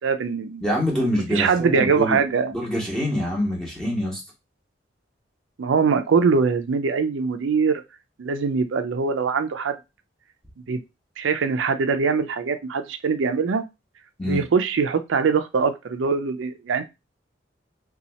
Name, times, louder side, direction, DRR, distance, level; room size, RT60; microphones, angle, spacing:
voice 1, 0.0-0.6 1.3-2.6 5.6-7.8 8.2-9.8 10.7-10.8 11.2-13.6 14.2-16.8, right 5 dB, 90° right, 8 dB, 0.4 m, -22 dB
voice 2, 0.6-2.2 2.5-4.2 14.2-14.4, equal, 5° left, -3 dB, 1.2 m, -25 dB
2.8 x 2.3 x 4.0 m, 0.24 s
head